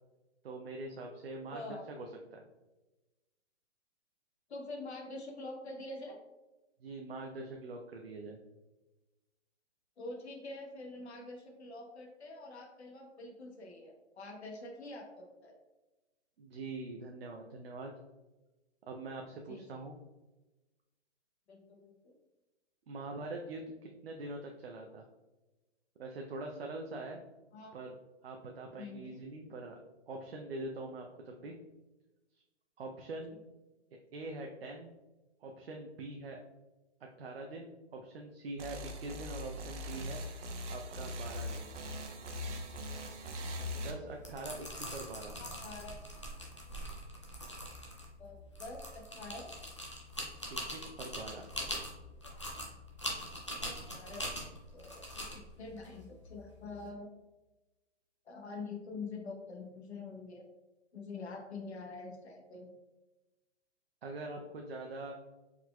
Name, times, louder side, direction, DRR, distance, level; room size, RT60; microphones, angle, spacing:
voice 1, 0.4-2.4 6.8-8.4 16.4-17.9 18.9-20.0 22.9-25.0 26.0-27.2 27.7-27.9 28.2-29.8 30.1-31.5 32.8-33.3 34.1-34.9 35.4-36.4 37.2-40.2 40.7-41.7 43.7-45.3 50.7-51.4 64.0-65.1, right 2 dB, 55° right, 1 dB, 0.6 m, -43 dB
voice 2, 1.5-1.8 4.5-6.2 10.0-15.6 19.5-19.6 21.5-22.1 27.5-27.7 28.8-29.1 45.4-45.9 48.2-49.6 53.6-54.2 54.7-55.3 55.6-57.1 58.3-60.5 60.9-62.7, left 3 dB, 65° left, 1 dB, 1.0 m, -45 dB
sound 1, 38.6-43.9, left 1 dB, 80° right, 1.0 m, -41 dB
sound 2, 44.1-56.8, equal, 25° left, 0.4 m, -43 dB
4.5 x 3.9 x 2.2 m, 1.1 s
hypercardioid pair, 180°, 35 cm